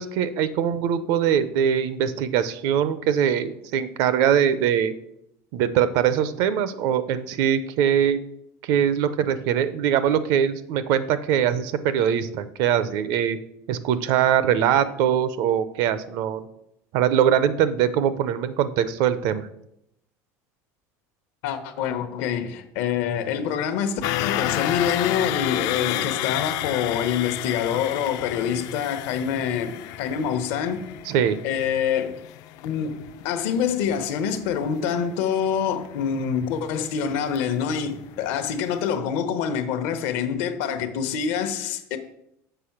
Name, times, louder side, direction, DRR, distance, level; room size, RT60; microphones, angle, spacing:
voice 1, 0.0-4.9 5.5-8.2 8.6-13.4 13.7-16.5 16.9-19.5 31.1-31.4, right 9 dB, 65° right, 0.6 m, -22 dB
voice 2, 21.4-30.8 31.4-32.2 32.6-33.0 33.2-42.0, left 8 dB, 70° left, 0.8 m, -26 dB
sound 1, 24.0-38.1 38.4-38.6 38.9-39.0, left 13 dB, 55° left, 0.4 m, -31 dB
6.8 x 4.6 x 5.8 m
cardioid pair, 155°, 7 cm